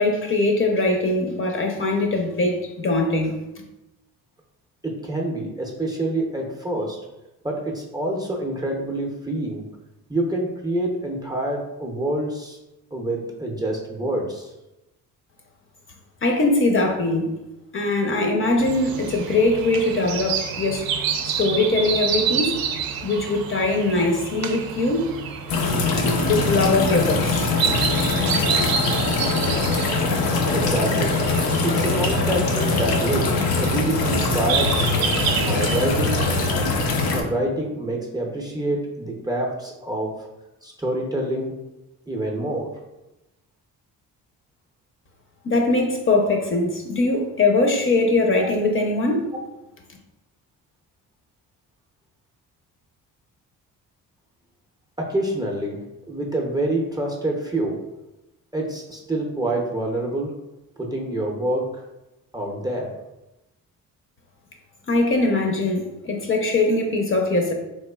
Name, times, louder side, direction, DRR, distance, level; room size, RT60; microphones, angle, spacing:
voice 1, 0.0-3.4 16.2-17.3 17.7-20.9 21.2-22.6 23.0-25.1 26.0-27.5 45.4-49.3 64.9-67.5, left 2 dB, 35° left, 2 dB, 0.6 m, -21 dB
voice 2, 4.8-7.0 7.4-9.6 10.1-12.6 12.9-14.5 30.5-31.2 31.6-34.9 35.4-36.7 37.1-40.3 40.6-41.5 42.1-42.8 55.0-57.8 58.5-60.3 60.8-61.8 62.3-62.9, right 1 dB, 10° right, -1 dB, 0.5 m, -27 dB
sound 1, 18.6-36.5, right 6 dB, 75° right, 0.5 m, -29 dB
sound 2, 25.5-37.2, left 3 dB, 80° left, 0.6 m, -22 dB
3.4 x 3.1 x 2.2 m, 0.95 s
cardioid pair, 80°, 36 cm